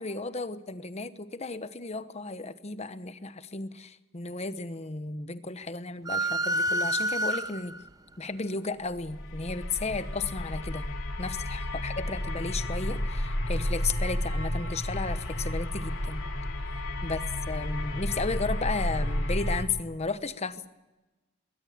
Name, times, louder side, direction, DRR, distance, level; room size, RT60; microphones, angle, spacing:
voice 1, 0.0-7.7 8.2-10.9 11.2-16.3 17.0-17.2 17.5-20.7, left 3 dB, 30° left, 12 dB, 1.0 m, -34 dB
sound 1, 6.1-7.9, right 1 dB, 20° right, 0.7 m, -28 dB
sound 2, 9.0-19.6, left 1 dB, 75° left, 2.8 m, -31 dB
21.0 x 18.5 x 8.8 m, 1.1 s
head